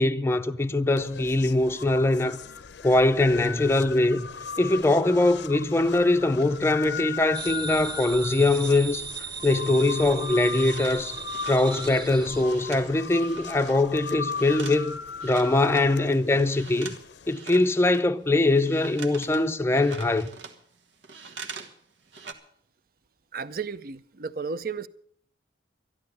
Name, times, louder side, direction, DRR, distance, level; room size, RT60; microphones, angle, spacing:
voice 1, 0.0-2.4 2.8-4.3 4.6-9.0 9.4-11.2 11.5-17.0 17.3-20.3, left 2 dB, 15° left, 0.5 m, -22 dB
sound 1, 1.0-17.3, left 6 dB, 75° left, 0.6 m, -38 dB
sound 2, 7.3-12.4, right 5 dB, 20° right, 1.0 m, -37 dB
sound 3, 10.0-15.9 16.3-17.0 17.3-21.8 22.0-22.3, right 5 dB, 85° right, 1.4 m, -43 dB
voice 2, 23.3-24.9, right 5 dB, 55° right, 0.6 m, -33 dB
12.5 x 12.0 x 6.7 m
head